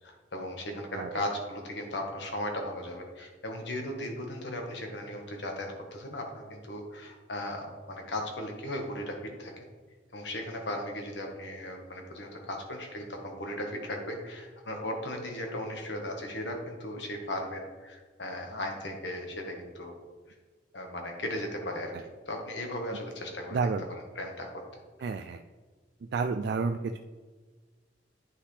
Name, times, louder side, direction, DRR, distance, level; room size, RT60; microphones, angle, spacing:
voice 1, 0.0-9.6 10.1-19.9 20.3-20.4 20.7-21.9 22.2-23.6 24.1-24.8, left 1 dB, 70° left, 2 dB, 1.4 m, -37 dB
voice 2, 23.5-23.8 25.0-25.4 26.1-27.0, right 4 dB, 60° right, 6 dB, 0.3 m, -30 dB
9.6 x 5.7 x 3.3 m, 1.4 s
head